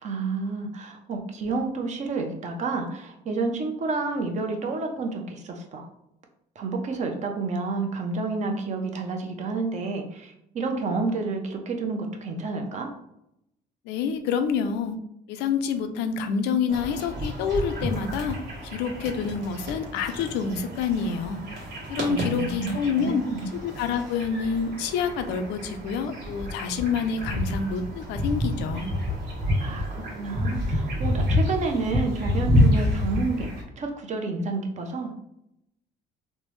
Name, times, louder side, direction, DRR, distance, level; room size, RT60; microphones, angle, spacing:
voice 1, 0.0-5.9 6.6-12.9 22.1-23.5 29.6-33.5 33.8-35.1, right 3 dB, 45° right, 4 dB, 0.6 m, -30 dB
voice 2, 13.9-15.0 15.3-18.4 18.6-21.4 21.9-23.2 23.6-28.9, left 6 dB, 90° left, 8 dB, 0.4 m, -27 dB
sound 1, 16.7-33.6, left 1 dB, 60° right, 1.2 m, -29 dB
3.3 x 2.0 x 3.1 m, 0.79 s
cardioid pair, 110°, 17 cm